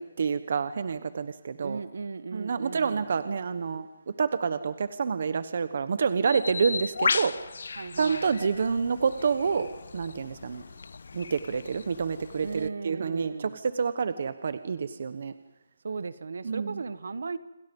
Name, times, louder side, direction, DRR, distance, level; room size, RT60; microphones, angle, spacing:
voice 1, 0.0-1.8 2.3-7.4 8.0-10.6 11.1-15.3 16.4-16.8, right 5 dB, 50° right, 12 dB, 1.1 m, -28 dB
voice 2, 1.6-3.1 7.8-8.3 12.4-13.6 15.8-17.4, right 4 dB, 65° right, 14 dB, 1.3 m, -36 dB
Bird, 6.3-12.7, left 4 dB, 65° left, 0.9 m, -35 dB
28.0 x 25.5 x 5.5 m, 0.98 s
hypercardioid pair, 170°, 0 cm